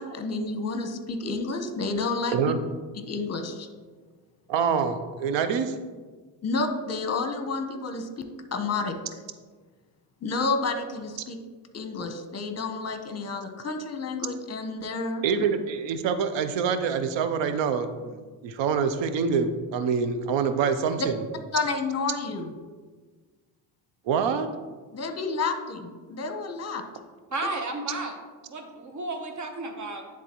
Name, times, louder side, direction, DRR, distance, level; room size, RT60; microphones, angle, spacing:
voice 1, 0.0-2.4 2.9-3.7 6.4-9.0 10.2-11.4 11.7-15.2 21.0-21.1 21.5-22.5 24.9-26.8, left 3 dB, 35° left, 7 dB, 0.9 m, -30 dB
voice 2, 4.5-5.7 15.2-21.2 24.1-24.5, right 6 dB, 80° right, 10 dB, 0.7 m, -26 dB
voice 3, 27.3-28.1 28.4-30.0, right 2 dB, 40° right, 5 dB, 1.0 m, -33 dB
10.0 x 3.6 x 3.0 m, 1.4 s
cardioid pair, 75°, 44 cm